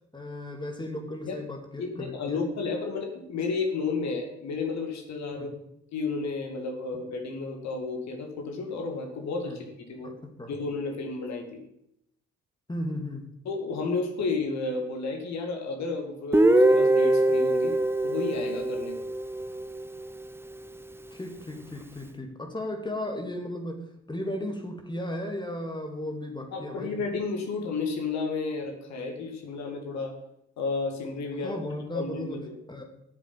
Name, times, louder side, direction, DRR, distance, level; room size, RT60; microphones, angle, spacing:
voice 1, 0.1-2.4 5.3-5.5 9.5-9.6 10.0-10.5 12.7-13.2 21.1-27.0 31.4-32.8, left 1 dB, 15° left, 4 dB, 2.5 m, -35 dB
voice 2, 1.8-5.5 5.9-10.1 10.5-11.6 13.5-17.7 18.0-18.9 26.5-30.1 30.6-31.6 31.9-32.6, left 4 dB, 55° left, 3 dB, 2.2 m, -32 dB
Guitar, 16.3-20.2, right 1 dB, 5° right, 0.9 m, -23 dB
8.8 x 7.1 x 8.7 m, 0.78 s
figure-of-eight pair, 45°, 33 cm